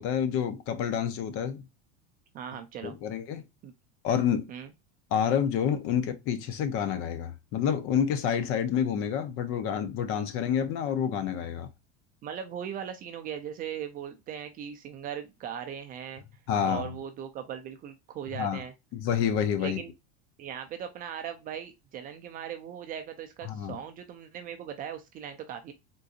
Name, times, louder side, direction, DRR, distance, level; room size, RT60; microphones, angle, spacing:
voice 1, 0.0-1.6 2.8-3.4 4.0-4.5 5.1-11.7 16.5-16.9 18.3-18.6 18.9-19.8 23.4-23.8, left 8 dB, 40° left, 0.6 m, -28 dB
voice 2, 2.3-3.0 3.6-3.7 4.5-4.7 12.2-16.2 16.6-18.7 19.6-19.9 20.4-25.7, right 8 dB, 25° right, 0.4 m, -39 dB
3.8 x 2.5 x 2.4 m
supercardioid pair, 145°, 33 cm